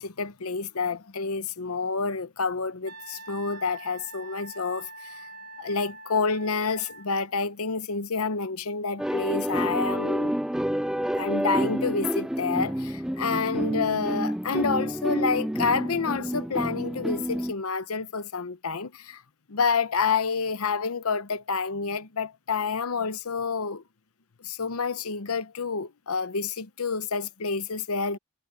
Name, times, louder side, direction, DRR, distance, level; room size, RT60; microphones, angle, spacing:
voice 1, 0.0-5.3 5.6-10.4 11.1-19.2 19.5-23.8 24.4-28.2, left 5 dB, 85° left, 0.9 m, -28 dB
Wind instrument woodwind instrument, 2.9-7.1, right 2 dB, 40° right, 1.8 m, -44 dB
sound 1, 9.0-17.5, equal, 5° right, 0.4 m, -28 dB
head